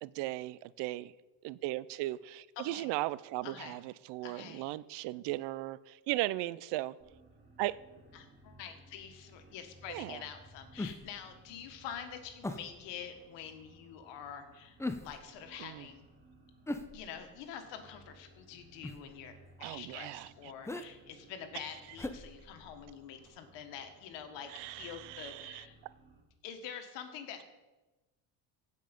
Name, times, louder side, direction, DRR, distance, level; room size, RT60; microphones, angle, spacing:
voice 1, 0.0-1.1 1.4-7.0 7.6-7.8 9.9-10.2 15.6-15.9 19.6-20.5 21.5-21.7 24.5-25.6, right 17 dB, 70° right, 0.5 m, -37 dB
voice 2, 2.6-2.9 3.4-3.8 4.2-4.6 8.1-16.0 16.9-19.3 19.6-25.8 26.4-27.4, left 8 dB, 75° left, 1.6 m, -46 dB
sound 1, 7.0-26.2, right 1 dB, 25° right, 3.4 m, -60 dB
sound 2, 10.8-11.2 12.4-12.8 14.8-15.3 16.7-17.4 18.8-19.2 20.6-20.9 22.0-22.9 23.2-23.3, left 2 dB, 5° left, 0.7 m, -40 dB
15.5 x 5.4 x 5.2 m
supercardioid pair, 100°, 44 cm